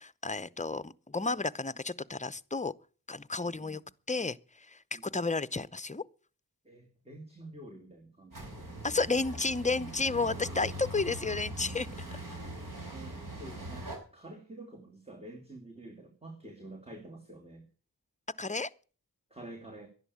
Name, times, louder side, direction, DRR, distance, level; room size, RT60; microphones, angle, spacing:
voice 1, 0.0-2.7 3.1-3.8 4.1-4.4 4.7-6.0 8.8-11.9 18.4-18.7, left 3 dB, 20° left, 0.7 m, -32 dB
voice 2, 3.4-3.9 4.9-5.4 6.6-9.0 12.3-12.4 12.7-17.6 19.3-19.9, right 1 dB, 15° right, 2.7 m, -49 dB
sound 1, 8.3-14.0, right 1 dB, 60° right, 6.0 m, -41 dB
11.5 x 11.0 x 8.4 m
wide cardioid pair, 60°, 36 cm